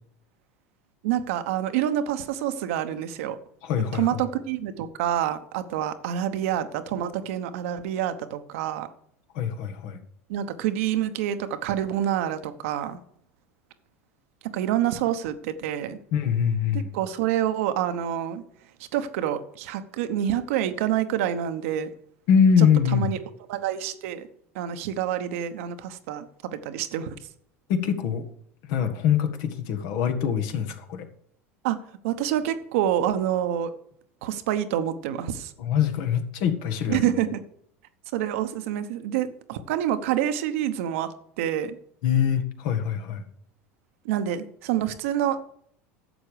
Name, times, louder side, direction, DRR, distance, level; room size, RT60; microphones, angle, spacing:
voice 1, 1.0-3.4 3.9-8.9 10.3-13.0 14.4-16.0 16.9-18.4 18.9-21.9 22.6-22.7 22.9-23.2 23.5-24.3 24.5-27.2 31.6-33.7 34.2-35.5 36.9-37.4 38.1-41.8 44.0-45.5, right 11 dB, 70° right, 10 dB, 1.0 m, -27 dB
voice 2, 3.6-4.2 9.3-10.0 16.1-16.9 22.3-23.1 27.7-28.2 28.6-31.1 35.6-37.1 42.0-43.2, left 8 dB, 60° left, 7 dB, 1.6 m, -23 dB
11.5 x 7.5 x 4.9 m, 0.67 s
hypercardioid pair, 85°, 8 cm